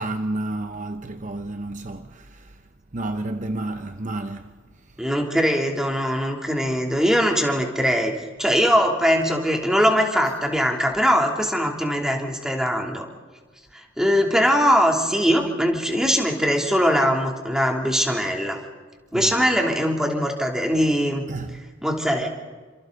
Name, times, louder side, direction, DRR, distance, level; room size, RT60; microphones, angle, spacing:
voice 1, 0.0-2.6 2.9-4.6 19.1-19.3 21.3-21.6, right 2 dB, 40° right, 0.9 m, -31 dB
voice 2, 5.0-8.1 8.4-13.1 13.7-18.6 19.1-21.2 21.8-22.3, equal, 5° right, 3.1 m, -21 dB
30.0 x 26.5 x 4.0 m
head